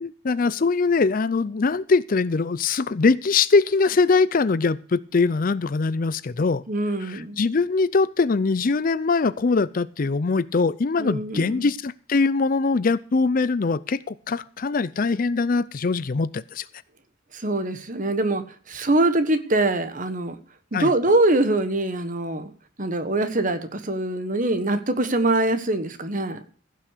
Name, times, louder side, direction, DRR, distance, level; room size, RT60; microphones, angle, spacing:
voice 1, 0.0-6.6 7.0-16.7 20.7-20.9, left 4 dB, 40° left, 18 dB, 0.5 m, -22 dB
voice 2, 6.7-7.4 11.0-11.7 17.3-20.4 20.7-22.5 22.8-26.4, right 2 dB, 40° right, 10 dB, 1.4 m, -23 dB
15.5 x 6.3 x 6.6 m, 0.43 s
head